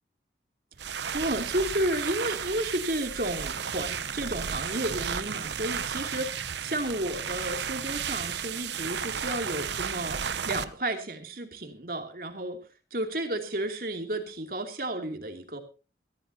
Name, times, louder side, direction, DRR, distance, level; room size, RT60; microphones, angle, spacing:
sound 1, 0.7-10.6, right 7 dB, 80° right, 0.9 m, -33 dB
voice 1, 0.8-12.6 12.9-15.6, right 1 dB, 55° right, 5 dB, 2.7 m, -32 dB
22.5 x 14.5 x 2.8 m, 0.32 s
head